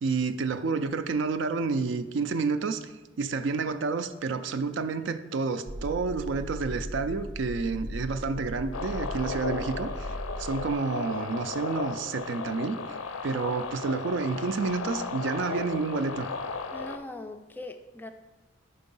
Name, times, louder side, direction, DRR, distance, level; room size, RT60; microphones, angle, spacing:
voice 1, 0.0-13.0 13.2-16.3, right 4 dB, 65° right, 0.4 m, -30 dB
sound 1, 5.7-10.7, equal, 80° right, 0.7 m, -38 dB
sound 2, 8.7-17.0, left 4 dB, 85° left, 0.5 m, -35 dB
voice 2, 16.7-18.1, left 1 dB, 10° left, 0.3 m, -41 dB
5.2 x 4.6 x 5.4 m
head